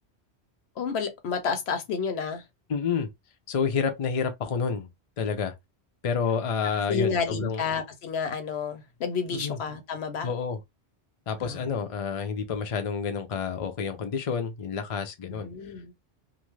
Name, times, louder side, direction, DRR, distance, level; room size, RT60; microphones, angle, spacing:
voice 1, 0.8-2.4 6.9-10.3 11.4-11.7 15.3-15.9, left 5 dB, 75° left, 1.0 m, -30 dB
voice 2, 2.7-3.1 3.5-4.9 5.2-5.5 6.0-7.6 9.3-9.6 10.2-10.6 11.3-15.5, left 6 dB, 45° left, 0.5 m, -29 dB
2.5 x 2.4 x 3.1 m
omnidirectional pair, 1.1 m